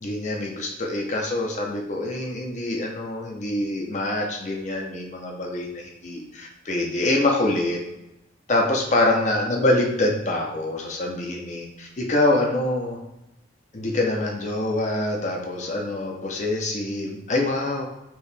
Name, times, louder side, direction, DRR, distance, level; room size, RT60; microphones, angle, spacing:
voice 1, 0.0-7.8 8.5-13.0 13.7-17.8, left 2 dB, 40° left, 0 dB, 0.7 m, -25 dB
4.6 x 3.0 x 3.3 m, 0.90 s
head